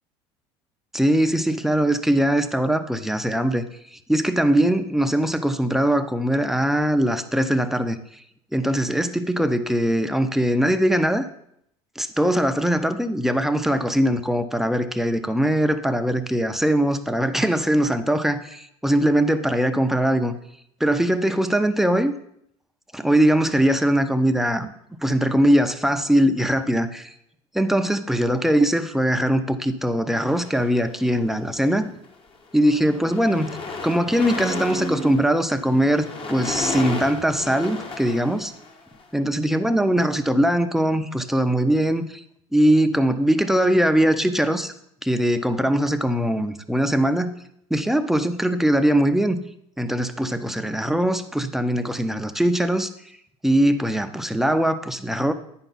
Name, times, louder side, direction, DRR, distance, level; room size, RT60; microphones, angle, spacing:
voice 1, 0.9-3.6 4.1-8.0 8.5-11.3 12.0-20.3 20.8-22.1 22.9-24.7 25.0-27.1 27.5-31.9 32.5-33.5 33.8-38.5 39.1-42.2 42.5-44.7 45.0-47.3 47.7-49.4 49.8-52.9 53.4-55.3, right 1 dB, ahead, 8 dB, 0.6 m, -21 dB
sound 1, 30.3-31.3 32.0-32.3 32.5-39.0, left 3 dB, 40° left, 1.2 m, -34 dB
8.9 x 5.7 x 4.1 m, 0.73 s
supercardioid pair, 85°, 14 cm